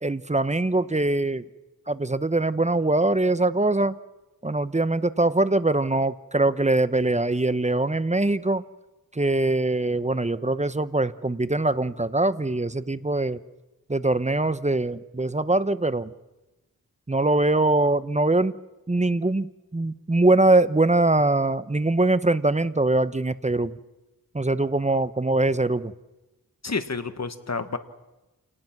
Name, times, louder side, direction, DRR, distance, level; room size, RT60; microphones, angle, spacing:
voice 1, 0.0-1.5 1.9-4.0 4.4-8.6 9.1-13.4 13.9-16.1 17.1-18.6 18.9-23.8 24.3-25.9, right 2 dB, 20° right, 15 dB, 0.9 m, -22 dB
voice 2, 26.6-27.8, left 4 dB, 50° left, 10 dB, 1.6 m, -29 dB
28.5 x 18.5 x 6.1 m, 1.1 s
wide cardioid pair, 55°, 35 cm